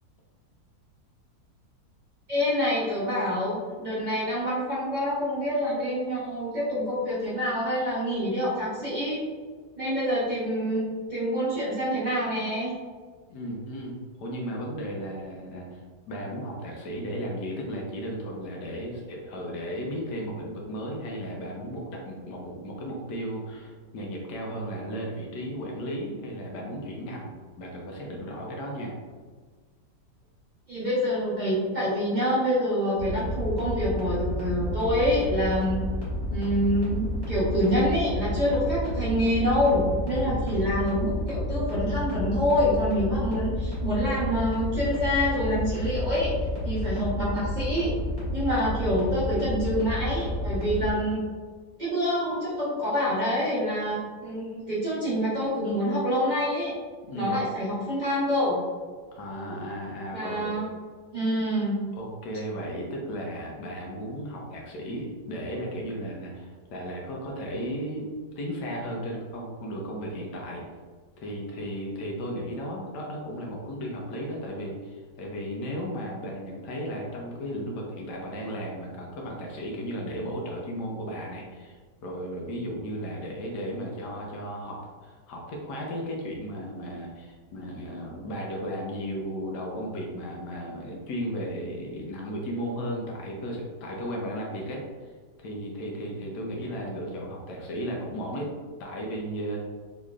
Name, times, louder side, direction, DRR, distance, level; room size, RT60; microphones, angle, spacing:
voice 1, 2.3-9.2 9.8-10.8 11.1-12.7 30.7-35.8 36.3-46.3 46.6-47.9 48.3-51.2 51.8-56.7 57.1-58.6 60.1-60.6 61.1-61.8, equal, 35° right, -10 dB, 0.8 m, -26 dB
voice 2, 13.3-15.8 16.1-27.3 27.6-29.0 40.1-40.4 57.1-57.4 59.1-60.5 61.9-68.1 68.4-70.6 71.2-94.8 95.4-98.5 98.8-99.7, equal, 75° left, -1 dB, 1.3 m, -35 dB
sound 1, 33.0-50.9, left 1 dB, 15° left, 1.1 m, -31 dB
4.0 x 3.0 x 2.4 m, 1.5 s
omnidirectional pair, 1.8 m